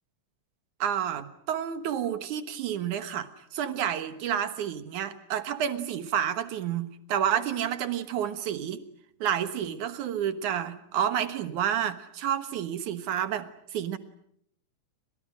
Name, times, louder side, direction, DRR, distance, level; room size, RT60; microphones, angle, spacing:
voice 1, 0.8-8.8 9.2-14.0, right 9 dB, 70° right, 11 dB, 2.7 m, -30 dB
29.5 x 26.0 x 6.3 m, 0.70 s
omnidirectional pair, 3.7 m